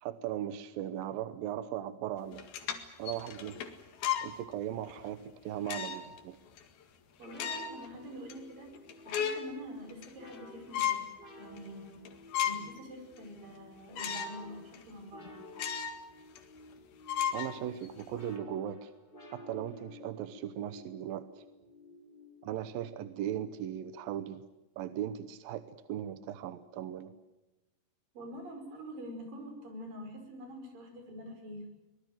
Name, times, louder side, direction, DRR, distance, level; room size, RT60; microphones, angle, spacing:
voice 1, 0.0-2.4 3.0-3.6 4.2-6.4 17.3-18.9 19.3-21.4 22.4-24.4 24.8-27.1, right 11 dB, 70° right, 12 dB, 2.3 m, -38 dB
sound 1, 2.3-4.4 4.9-5.0 5.7-6.2 6.6-6.7 7.2-7.9 8.3-8.4 8.7-9.5 9.9-10.4 10.7-11.1 11.6-11.7 12.1-12.8 13.2-13.3 14.0-14.4 14.7-14.8 15.5-16.0 16.4-16.5 17.1-18.0, left 9 dB, 60° left, 3.5 m, -34 dB
sound 2, 7.2-23.5, left 2 dB, 15° left, 3.0 m, -54 dB
voice 2, 7.2-8.8 9.1-11.0 11.4-12.0 12.4-15.4 28.2-31.6, equal, 50° right, 4 dB, 6.9 m, -46 dB
24.5 x 20.5 x 9.2 m, 1.0 s
omnidirectional pair, 5.1 m